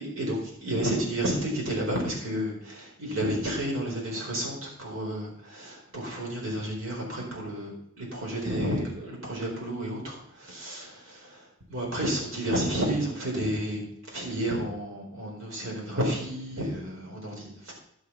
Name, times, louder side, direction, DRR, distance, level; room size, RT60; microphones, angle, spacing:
voice 1, 0.0-11.4 11.7-17.7, right 1 dB, 70° right, -2 dB, 4.1 m, -31 dB
11.0 x 6.9 x 5.6 m, 0.75 s
head